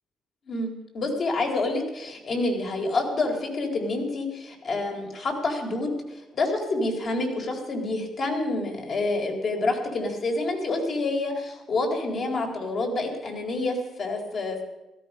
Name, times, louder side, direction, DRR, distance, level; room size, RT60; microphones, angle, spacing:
voice 1, 0.5-14.6, left 2 dB, 55° left, 2 dB, 4.1 m, -28 dB
16.5 x 14.5 x 5.5 m, 1.0 s
cardioid pair, 90°, 0 cm